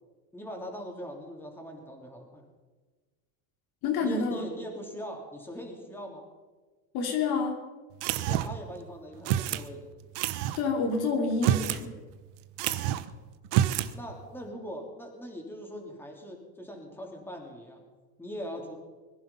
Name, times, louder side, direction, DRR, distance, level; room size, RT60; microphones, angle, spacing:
voice 1, 0.3-2.4 4.0-6.2 8.1-9.9 13.9-17.8 18.2-18.7, equal, 5° left, 0 dB, 3.2 m, -41 dB
voice 2, 3.8-4.4 6.9-7.5 10.6-11.9, left 4 dB, 65° left, 2 dB, 3.0 m, -28 dB
sound 1, 8.0-8.7 9.2-9.7 10.1-10.6 11.3-11.8 12.1-12.2 12.6-13.1 13.4-13.9, right 12 dB, 70° right, 1.0 m, -27 dB
21.5 x 11.0 x 5.7 m, 1.3 s
supercardioid pair, 115°, 42 cm